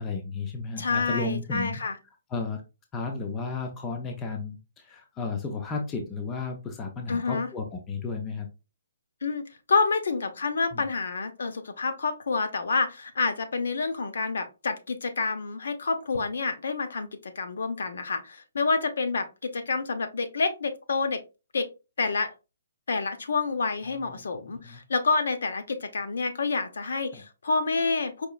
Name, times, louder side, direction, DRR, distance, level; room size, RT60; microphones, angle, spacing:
voice 1, 0.0-1.8 2.3-2.6 2.9-8.5 10.7-10.9 23.9-24.8 27.1-27.2, left 4 dB, 10° left, 3 dB, 0.4 m, -33 dB
voice 2, 0.8-2.0 7.1-7.5 9.2-9.4 9.7-21.2 21.5-21.7 22.0-22.3 22.9-28.3, left 4 dB, 60° left, 8 dB, 0.7 m, -28 dB
4.6 x 3.0 x 2.3 m, 0.28 s
hypercardioid pair, 180°, 0 cm